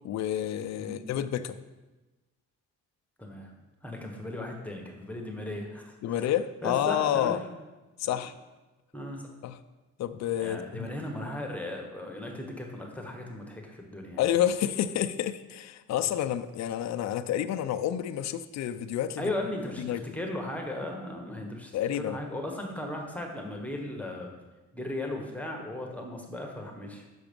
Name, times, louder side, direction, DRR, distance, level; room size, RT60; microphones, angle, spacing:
voice 1, 0.0-1.6 6.0-7.4 8.0-8.3 9.4-9.6 10.0-10.9 14.2-19.3 19.8-20.0 21.7-22.2, left 11 dB, 55° left, 9 dB, 0.5 m, -29 dB
voice 2, 3.2-3.5 3.8-6.3 6.6-7.4 8.0-8.2 8.9-9.3 10.4-14.2 19.2-21.7 22.0-24.3 24.7-27.0, left 1 dB, 5° left, 1 dB, 1.2 m, -36 dB
6.1 x 5.8 x 5.2 m, 1.1 s
cardioid pair, 105°, 32 cm